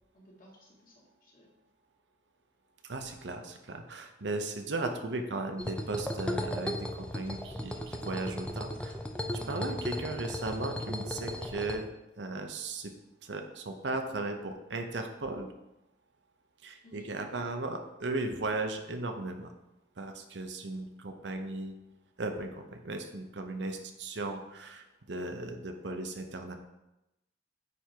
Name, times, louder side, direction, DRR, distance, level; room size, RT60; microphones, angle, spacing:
voice 1, 0.1-1.5 9.3-9.7 16.8-17.2, left 1 dB, 50° left, -4 dB, 2.2 m, -55 dB
voice 2, 2.9-9.0 9.5-11.9 12.2-12.9 13.2-15.5 16.6-19.5 20.0-21.8 22.2-26.6, right 2 dB, 75° right, 5 dB, 0.8 m, -36 dB
sound 1, 5.6-11.8, left 1 dB, 5° left, 0.6 m, -36 dB
9.3 x 3.6 x 4.5 m, 0.93 s
head